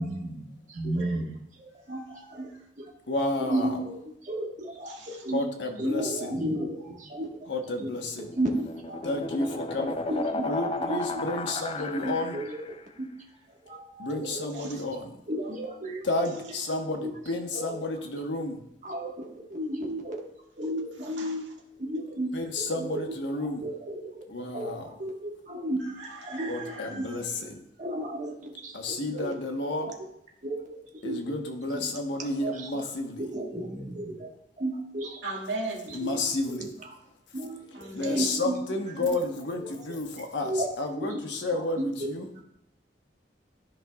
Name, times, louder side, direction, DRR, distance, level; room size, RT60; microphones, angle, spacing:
voice 1, 0.0-1.3 1.6-2.5 3.4-5.4 5.8-7.3 7.8-7.9 8.3-9.0 9.4-9.6 10.1-12.7 13.6-14.7 15.3-16.1 16.5-16.6 17.0-17.1 17.5-17.9 18.8-20.3 20.6-21.4 21.8-22.3 22.6-23.0 23.4-24.2 24.5-25.8 26.2-27.1 27.8-29.4 29.8-29.9 30.4-31.4 31.7-31.9 32.2-32.8 33.2-34.3 34.6-35.2 35.9-36.2 36.5-37.0 37.3-38.6 39.0-39.1 39.6-39.7 40.4-40.7 41.0-41.2 41.6-42.1, right 1 dB, 45° right, -1 dB, 1.5 m, -34 dB
voice 2, 3.1-3.8 5.3-6.3 7.5-8.3 9.0-10.0 10.4-12.4 14.0-15.1 16.0-18.6 22.3-23.7 24.3-24.9 26.5-27.6 28.7-29.9 31.0-33.3 35.9-36.7 37.9-42.4, left 2 dB, 85° left, 3 dB, 1.2 m, -31 dB
voice 3, 4.9-5.2 14.5-14.8 21.0-21.3 25.8-27.3 35.2-35.9 37.7-38.4, right 2 dB, 85° right, -2 dB, 1.8 m, -38 dB
sound 1, 8.0-12.8, left 2 dB, 30° left, 0.5 m, -34 dB
13.0 x 5.3 x 2.4 m, 0.78 s
head